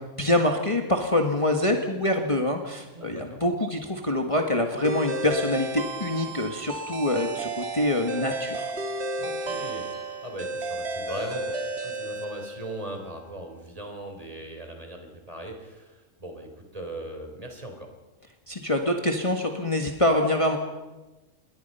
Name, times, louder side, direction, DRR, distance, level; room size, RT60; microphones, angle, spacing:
voice 1, 0.0-8.7 18.5-20.6, left 1 dB, 25° left, 3 dB, 1.8 m, -25 dB
voice 2, 2.9-3.4 9.2-17.9, right 1 dB, 25° right, 3 dB, 3.9 m, -39 dB
sound 1, 4.8-13.0, right 2 dB, 55° right, 2.2 m, -33 dB
27.5 x 21.5 x 5.6 m, 1.1 s
omnidirectional pair, 1.3 m